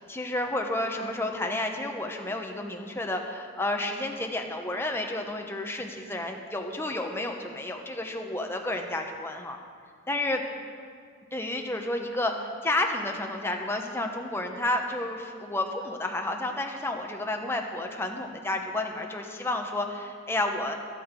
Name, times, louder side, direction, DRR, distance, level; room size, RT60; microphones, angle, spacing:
voice 1, 0.1-9.6 10.1-10.4 11.3-20.7, left 1 dB, 10° left, 2 dB, 1.0 m, -31 dB
13.0 x 13.0 x 5.2 m, 2.1 s
head